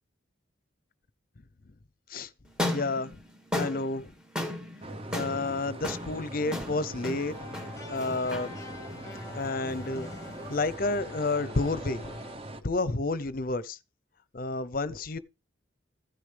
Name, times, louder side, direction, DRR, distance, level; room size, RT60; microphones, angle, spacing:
sound 1, 2.5-10.7, left 1 dB, 5° right, 2.0 m, -37 dB
voice 1, 2.7-3.2 3.6-4.1 5.1-8.5 9.3-10.1 10.5-12.2 12.6-13.8 14.3-15.2, left 3 dB, 45° left, 0.7 m, -30 dB
sound 2, 4.8-12.6, right 1 dB, 30° right, 1.0 m, -42 dB
sound 3, 7.3-12.4, left 3 dB, 15° left, 1.5 m, -45 dB
15.5 x 9.9 x 3.4 m
head